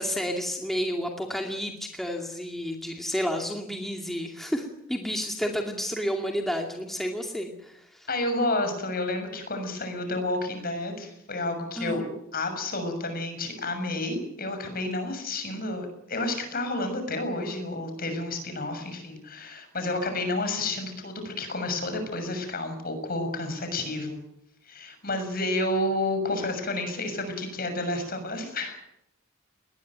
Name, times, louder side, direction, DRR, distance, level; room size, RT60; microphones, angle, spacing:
voice 1, 0.0-8.1 11.8-12.0, equal, ahead, 2 dB, 2.4 m, -31 dB
voice 2, 8.1-12.0 12.3-24.2 24.7-28.8, left 2 dB, 45° left, 7 dB, 6.7 m, -30 dB
20.5 x 20.0 x 9.3 m, 0.79 s
head